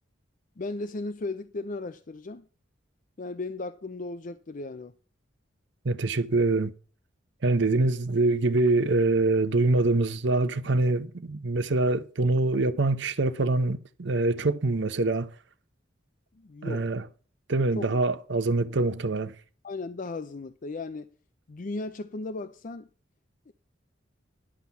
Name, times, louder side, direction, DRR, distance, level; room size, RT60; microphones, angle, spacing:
voice 1, 0.6-2.5 3.2-4.9 16.3-16.9 17.7-17.9 19.6-21.1 21.5-22.9 23.5-23.6, left 3 dB, 45° left, 0.5 m, -36 dB
voice 2, 5.8-6.7 7.4-15.3 16.6-17.0 17.5-19.3, right 2 dB, 65° right, 0.8 m, -24 dB
11.0 x 5.9 x 7.0 m
head